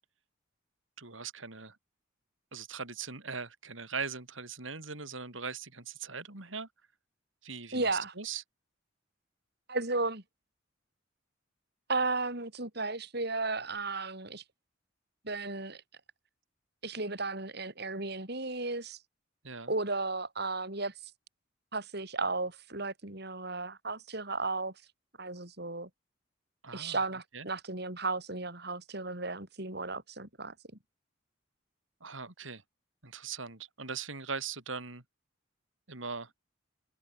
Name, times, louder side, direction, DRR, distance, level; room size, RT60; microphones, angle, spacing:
voice 1, 1.0-1.8 2.5-6.7 7.4-8.4 19.4-19.7 26.6-27.0 27.3-27.5 32.0-32.6 33.0-35.0 35.9-36.3, right 5 dB, 80° right, 4.3 m, -40 dB
voice 2, 7.7-8.1 9.7-10.2 11.9-14.4 15.2-15.8 16.8-19.0 19.7-20.9 21.7-24.7 25.2-25.9 26.7-30.5, right 3 dB, 55° right, 4.8 m, -34 dB
head